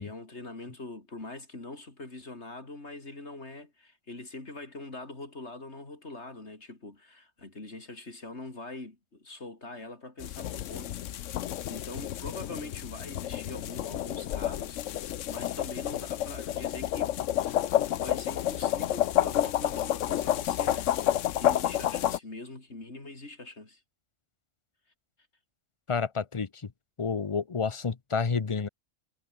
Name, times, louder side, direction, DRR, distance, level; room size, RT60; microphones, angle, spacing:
voice 1, 0.0-11.4 11.7-14.8 15.3-17.2 17.8-23.8, left 2 dB, 60° left, 4.3 m, -43 dB
sound 1, 10.2-22.2, left 12 dB, 75° left, 1.0 m, -30 dB
voice 2, 25.9-26.5 27.0-28.7, left 5 dB, 30° left, 0.8 m, -29 dB
omnidirectional pair, 1.3 m